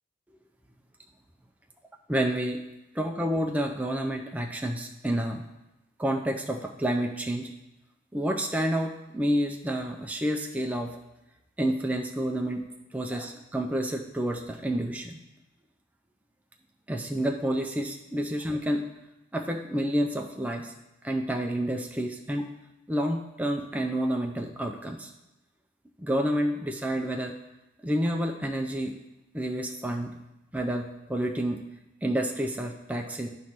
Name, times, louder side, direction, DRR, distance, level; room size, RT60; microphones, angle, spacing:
voice 1, 2.1-2.7 2.9-5.4 6.0-7.5 8.1-11.0 11.6-15.2 16.9-18.9 19.3-20.7 21.0-22.5 22.9-25.1 26.0-27.3 27.8-29.0 29.3-30.1 30.5-31.6 32.0-33.3, equal, 5° right, 2 dB, 0.4 m, -29 dB
9.1 x 3.1 x 5.8 m, 0.96 s
head